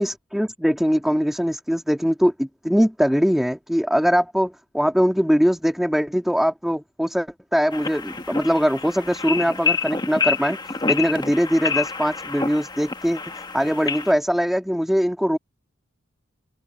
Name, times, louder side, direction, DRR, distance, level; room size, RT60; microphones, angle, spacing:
voice 1, 0.0-10.6 10.9-13.2 13.5-15.4, equal, ahead, 1.9 m, -21 dB
sound 1, 7.7-14.1, left 5 dB, 20° left, 1.4 m, -28 dB
open air
head